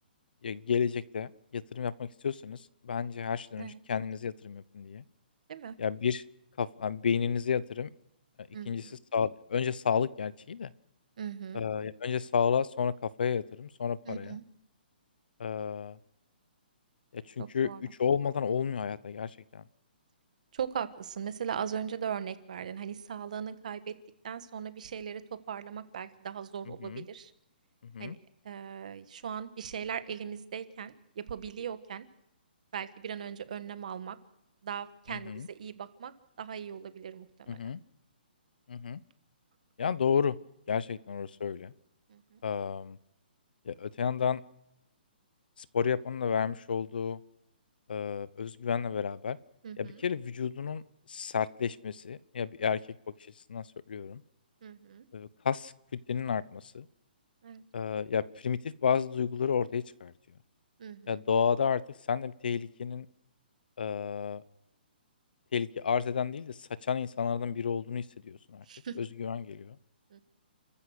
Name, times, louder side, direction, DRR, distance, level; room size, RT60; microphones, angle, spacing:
voice 1, 0.4-2.6 2.8-5.0 5.8-6.2 6.6-7.9 8.4-10.7 11.5-14.4 15.4-16.0 17.1-17.7 18.0-19.6 26.7-27.1 27.8-28.2 35.1-35.5 37.5-37.8 38.7-39.0 39.8-40.4 40.7-41.7 42.4-43.0 43.7-44.4 45.6-47.2 47.9-49.4 49.8-50.8 51.1-52.8 53.5-54.2 55.1-56.9 57.7-60.1 61.1-61.8 62.1-63.1 63.8-64.4 65.5-68.6 69.0-69.8, left 7 dB, 60° left, 19 dB, 0.8 m, -31 dB
voice 2, 8.5-8.9 11.2-11.6 14.0-14.4 17.4-17.9 20.5-24.0 24.2-27.3 28.0-28.2 28.4-32.1 32.7-34.2 34.6-36.1 36.4-37.6 42.1-42.4 49.6-50.0 54.6-55.0 57.4-57.6 60.8-61.2 68.7-69.0 70.1-70.2, right 8 dB, 45° right, 12 dB, 1.4 m, -39 dB
29.5 x 14.5 x 6.5 m, 0.85 s
hypercardioid pair, 175°, 6 cm